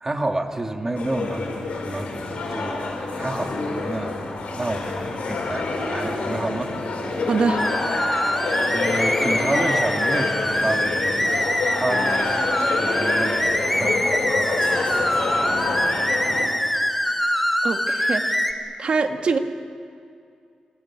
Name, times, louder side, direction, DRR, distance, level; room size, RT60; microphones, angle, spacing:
voice 1, 0.0-3.6 3.8-6.8 8.6-11.4 11.7-12.4 12.7-14.9, right 2 dB, 20° right, 4 dB, 1.9 m, -30 dB
sound 1, 0.9-16.4, left 3 dB, 80° left, 5.7 m, -27 dB
voice 2, 7.3-7.7 17.6-18.4 18.8-19.4, right 4 dB, 55° right, 5 dB, 2.0 m, -23 dB
sound 2, 7.6-18.5, equal, 5° left, 2.2 m, -24 dB
26.5 x 21.0 x 8.9 m, 2.3 s
wide cardioid pair, 110°, 2 cm